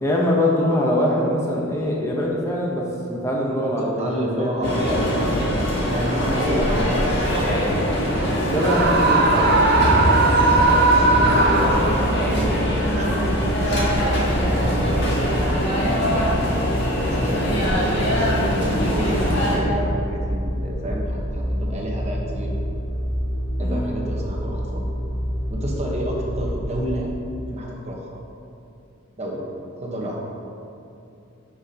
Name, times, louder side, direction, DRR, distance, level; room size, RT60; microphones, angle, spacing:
voice 1, 0.0-5.0 6.3-7.0 8.5-9.7 10.7-11.2 11.8-12.1 17.2-17.4 23.6-23.8, left 1 dB, 15° left, -3 dB, 0.7 m, -24 dB
voice 2, 3.8-7.9 10.5-14.9 15.2-16.2 17.1-22.6 23.6-24.9 25.5-27.1 27.5-28.2 29.2-29.4 29.8-30.2, equal, 35° right, -2 dB, 1.1 m, -30 dB
sound 1, 4.6-19.6, equal, 60° left, 1.8 m, -22 dB
sound 2, 8.2-26.9, equal, 35° left, 1.4 m, -28 dB
Screaming, 8.6-12.2, right 3 dB, 55° right, 0.7 m, -18 dB
10.5 x 5.9 x 2.8 m, 2.7 s
head